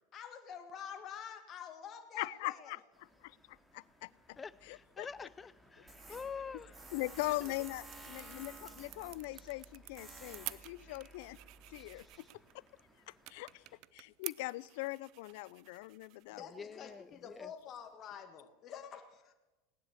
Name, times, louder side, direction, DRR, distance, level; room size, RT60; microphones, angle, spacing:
voice 1, 0.1-2.8 16.3-19.3, left 7 dB, 40° left, 5 dB, 1.6 m, -48 dB
voice 2, 2.2-2.8 3.2-4.4 4.6-5.1 6.1-6.2 6.9-11.4 11.7-12.3 12.5-12.6 13.1-13.6 13.9-16.4, left 20 dB, 65° left, 22 dB, 0.5 m, -41 dB
sound 1, 2.9-13.8, equal, ahead, 2.3 m, -65 dB
voice 3, 4.4-6.7 16.5-17.5, left 5 dB, 20° left, 17 dB, 0.8 m, -46 dB
Tools, 5.9-12.0, right 2 dB, 20° right, 3.4 m, -53 dB
sound 2, 6.4-17.9, right 20 dB, 55° right, 0.5 m, -52 dB
18.0 x 10.0 x 8.0 m, 1.1 s
hypercardioid pair, 90°, 0 cm